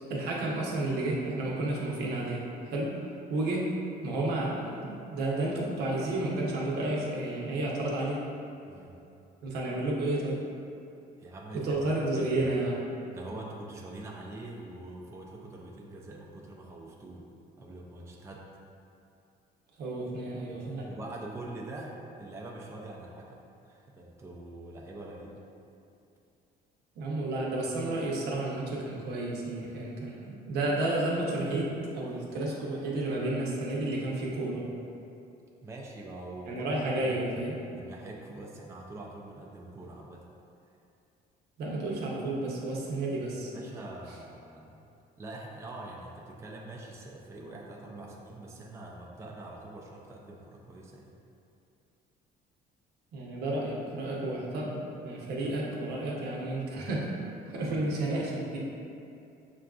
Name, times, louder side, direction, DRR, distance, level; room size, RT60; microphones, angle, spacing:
voice 1, 0.1-2.9 3.3-3.7 4.0-8.2 9.4-10.5 11.5-12.8 19.8-20.9 27.0-34.7 36.5-37.6 41.6-43.5 47.9-48.1 53.1-58.6, right 2 dB, 75° right, -3 dB, 0.8 m, -31 dB
voice 2, 8.7-9.0 11.2-12.5 13.1-17.3 17.6-18.5 20.9-25.4 35.6-36.7 37.0-37.4 37.7-40.3 43.5-44.8 45.2-51.1 57.5-57.9, right 2 dB, 15° right, -2 dB, 0.4 m, -44 dB
5.7 x 2.4 x 2.3 m, 2.6 s
cardioid pair, 110°, 17 cm